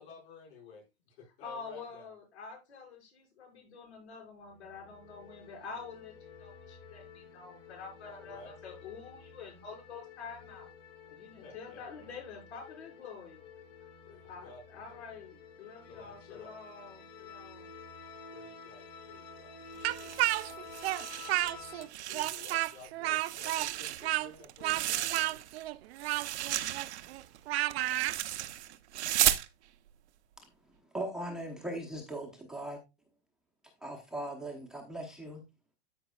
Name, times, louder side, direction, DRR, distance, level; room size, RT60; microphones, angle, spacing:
voice 1, 0.0-2.1 8.0-8.6 11.4-12.1 14.0-14.6 14.9-15.1 15.9-16.6 18.3-19.6 20.0-20.4 22.1-25.8, left 4 dB, 55° left, 5.8 m, -53 dB
voice 2, 1.4-6.1 6.4-10.7 11.1-13.4 14.2-17.7, left 5 dB, 85° left, 6.0 m, -47 dB
sound 1, 4.5-21.8, left 4 dB, 40° left, 3.0 m, -51 dB
Speech, 19.8-21.9 22.1-28.2, right 16 dB, 70° right, 0.6 m, -32 dB
sound 2, 19.8-21.5 21.8-22.8 23.1-25.6 26.0-29.5, right 13 dB, 90° right, 0.9 m, -34 dB
voice 3, 30.9-32.8 33.8-35.4, right 1 dB, ahead, 0.9 m, -39 dB
13.5 x 5.4 x 2.4 m
supercardioid pair, 160°, 33 cm